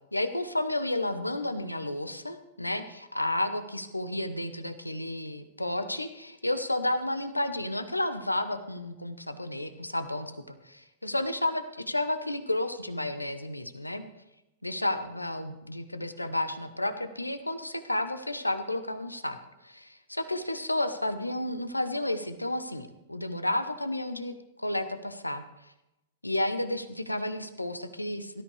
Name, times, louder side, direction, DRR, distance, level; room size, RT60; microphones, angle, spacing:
voice 1, 0.1-14.0 14.6-19.4 19.6-25.4 26.2-28.4, left 1 dB, 90° left, 10 dB, 1.0 m, -32 dB
17.5 x 13.5 x 3.3 m, 0.92 s
figure-of-eight pair, 100°, 0 cm